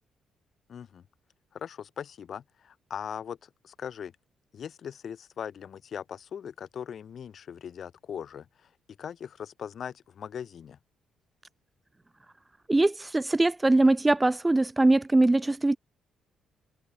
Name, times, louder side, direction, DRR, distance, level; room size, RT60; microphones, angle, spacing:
voice 1, 0.7-1.0 1.5-4.1 4.5-8.7 9.0-10.8, left 8 dB, 55° left, 7.8 m, -40 dB
voice 2, 12.7-15.8, right 2 dB, 15° right, 1.6 m, -22 dB
cardioid pair, 90°, 0 cm